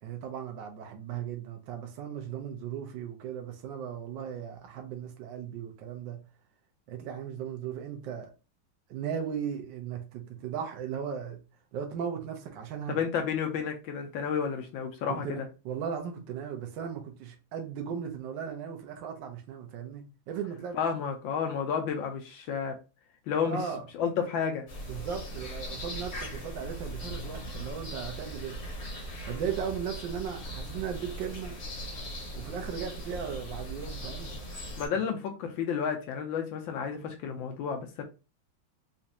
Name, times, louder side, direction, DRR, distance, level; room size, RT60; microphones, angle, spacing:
voice 1, 0.0-6.2 6.9-8.3 8.9-11.4 11.7-13.0 15.1-20.8 23.4-23.8 24.9-28.6 29.3-31.5 32.3-34.3, right 8 dB, 70° right, 1.3 m, -37 dB
voice 2, 12.9-15.4 20.7-22.8 23.3-23.6 24.0-24.7 34.8-38.0, left 7 dB, 75° left, 1.2 m, -31 dB
sound 1, 24.7-34.9, equal, 40° left, 0.9 m, -39 dB
4.1 x 2.4 x 2.7 m
omnidirectional pair, 2.4 m